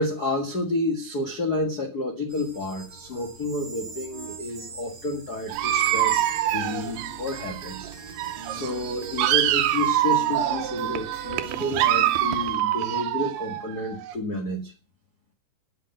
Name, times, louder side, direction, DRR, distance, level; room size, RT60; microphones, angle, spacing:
voice 1, 0.0-7.9 8.5-14.7, left 2 dB, 70° left, 1 dB, 0.9 m, -30 dB
sound 1, 2.3-10.0, right 3 dB, 40° right, 1.5 m, -41 dB
sound 2, 5.5-12.5, right 6 dB, 60° right, 2.3 m, -42 dB
Dog, 5.5-7.9 8.2-14.1, right 13 dB, 80° right, 2.8 m, -25 dB
8.8 x 8.3 x 7.7 m, 0.36 s
omnidirectional pair, 4.5 m